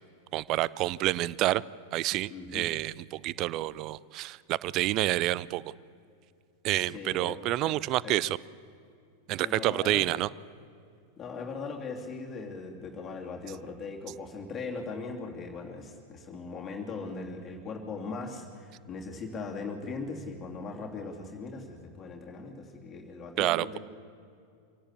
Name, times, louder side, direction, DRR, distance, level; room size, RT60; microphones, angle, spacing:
voice 1, 0.3-1.6 1.9-5.7 6.6-8.4 9.3-10.3 23.4-23.7, right 16 dB, 40° right, 21 dB, 0.5 m, -28 dB
voice 2, 2.3-2.7 6.8-7.4 7.6-7.8 8.0-8.1 9.3-10.1 11.2-23.8, left 4 dB, 25° left, 0 dB, 3.0 m, -39 dB
25.5 x 18.0 x 8.4 m, 2.4 s
figure-of-eight pair, 90°, 0 cm